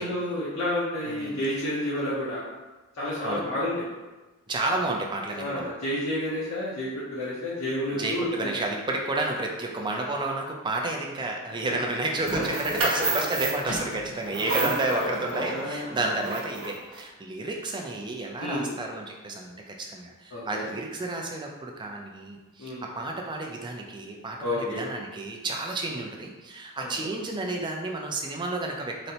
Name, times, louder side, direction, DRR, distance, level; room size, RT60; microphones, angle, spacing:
voice 1, 0.0-2.5 3.0-3.9 5.4-8.5 12.3-12.4 14.5-15.1 15.4-15.9 18.4-18.7 20.3-20.7 22.6-22.8 24.4-24.8 26.8-27.1, left 1 dB, 70° left, -8 dB, 0.7 m, -30 dB
voice 2, 1.1-1.4 3.2-3.4 4.5-5.7 7.9-29.1, right 2 dB, 20° right, 1 dB, 0.4 m, -31 dB
sound 1, 12.3-17.0, right 2 dB, 75° right, 0.7 m, -31 dB
4.0 x 2.1 x 2.7 m, 1.2 s
head